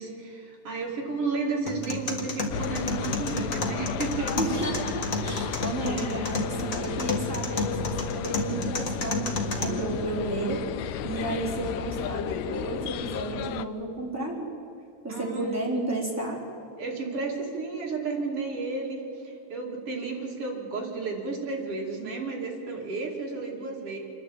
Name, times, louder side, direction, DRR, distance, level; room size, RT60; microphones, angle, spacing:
voice 1, 0.0-4.4 5.9-7.0 15.1-15.7 16.8-24.0, right 4 dB, 45° right, -1 dB, 3.5 m, -33 dB
sound 1, 1.7-9.7, left 2 dB, 40° left, 1.3 m, -32 dB
sound 2, 2.5-13.7, left 9 dB, 85° left, 2.3 m, -34 dB
voice 2, 4.4-10.6 11.0-14.5 15.0-16.4, right 1 dB, 5° right, -4 dB, 3.5 m, -32 dB
27.5 x 11.0 x 8.8 m, 2.8 s
omnidirectional pair, 3.8 m